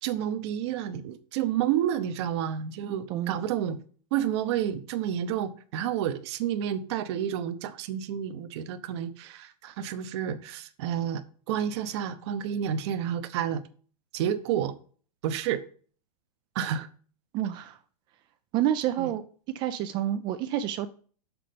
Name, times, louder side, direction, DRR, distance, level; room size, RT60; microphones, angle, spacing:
voice 1, 0.0-3.8 4.1-11.2 11.5-13.6 14.1-14.7 15.2-15.6 16.5-16.9 19.0-19.1, right 10 dB, 45° right, 0.8 m, -30 dB
voice 2, 2.8-3.4 17.3-17.8 18.5-19.2 19.5-20.9, right 11 dB, 20° right, 0.4 m, -29 dB
6.4 x 6.1 x 5.0 m
hypercardioid pair, 145°, 20 cm